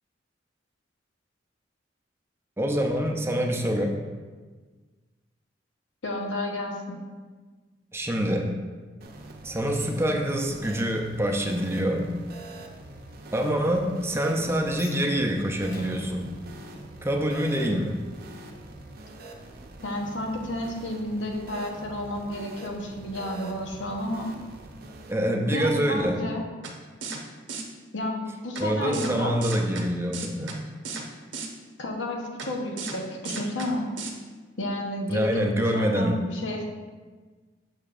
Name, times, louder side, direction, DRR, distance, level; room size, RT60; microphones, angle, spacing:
voice 1, 2.6-4.0 7.9-8.5 9.4-12.1 13.3-16.3 17.0-18.0 25.1-26.2 28.6-30.6 35.1-36.2, equal, 15° right, 2 dB, 0.5 m, -26 dB
voice 2, 6.0-7.0 19.8-24.3 25.5-26.4 27.9-29.4 31.8-33.9 34.6-36.7, left 1 dB, 90° left, 1 dB, 1.0 m, -31 dB
sound 1, 9.0-25.1, right 2 dB, 55° right, 0.6 m, -44 dB
sound 2, 14.7-17.8, left 2 dB, 55° left, 0.6 m, -45 dB
sound 3, 26.6-26.7 27.0-27.2 27.5-27.6 28.6-28.7 28.9-29.1 29.4-29.8 30.1-30.6 30.8-31.0 31.3-31.5 32.4-32.5 32.8-33.0 33.2-33.7 34.0-34.1, right 5 dB, 90° right, 0.8 m, -34 dB
6.7 x 6.4 x 2.5 m, 1.4 s
head